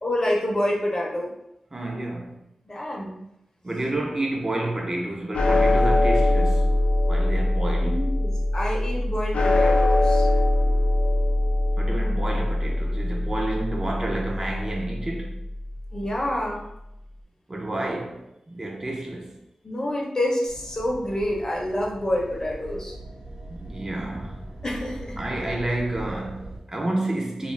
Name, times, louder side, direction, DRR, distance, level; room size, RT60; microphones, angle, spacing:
voice 1, 0.0-1.3 2.7-3.2 7.8-10.3 15.9-16.7 19.6-22.9 24.6-25.2, left 1 dB, 30° left, 0.6 m, -27 dB
voice 2, 1.7-2.4 3.6-6.8 7.1-8.0 11.8-15.5 17.5-19.4 23.5-24.5 25.2-27.5, right 1 dB, 25° right, 0.4 m, -30 dB
sound 1, 5.3-15.8, left 1 dB, 75° left, 0.3 m, -22 dB
sound 2, 20.5-26.6, right 1 dB, 65° right, 0.8 m, -40 dB
2.4 x 2.3 x 3.2 m
wide cardioid pair, 105°, 2 cm